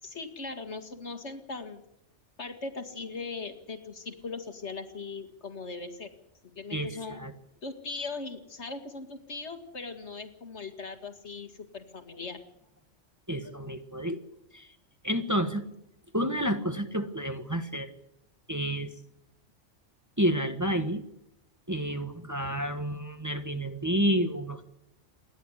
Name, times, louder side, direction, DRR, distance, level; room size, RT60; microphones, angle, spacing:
voice 1, 0.0-1.8 2.4-6.1 6.6-7.2 7.6-12.4, left 4 dB, 65° left, 8 dB, 2.3 m, -39 dB
voice 2, 6.7-7.3 13.3-14.2 14.5-14.7 15.0-15.6 16.1-17.9 18.5-18.9 20.2-21.0 21.7-24.6, equal, 15° right, 7 dB, 1.3 m, -30 dB
28.0 x 11.0 x 9.9 m, 0.80 s
omnidirectional pair, 1.2 m